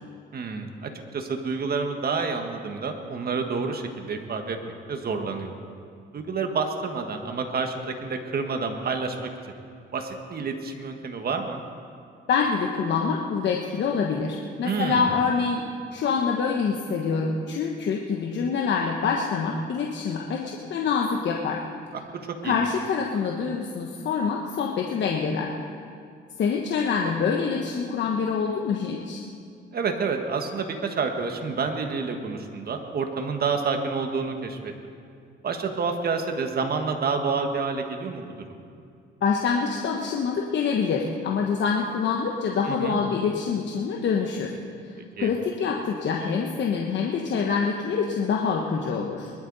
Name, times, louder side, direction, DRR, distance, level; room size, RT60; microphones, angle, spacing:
voice 1, 0.3-5.5 6.1-9.3 9.9-11.6 14.6-15.1 22.4-22.6 29.7-34.7 35.4-38.6 42.6-43.0 45.2-45.3, right 4 dB, 50° right, 5 dB, 1.6 m, -29 dB
voice 2, 12.3-15.6 15.9-21.6 22.4-25.5 26.4-29.2 39.2-44.5 45.2-49.3, left 5 dB, 65° left, 0 dB, 1.2 m, -26 dB
22.0 x 12.0 x 4.1 m, 2.4 s
cardioid pair, 90°, 20 cm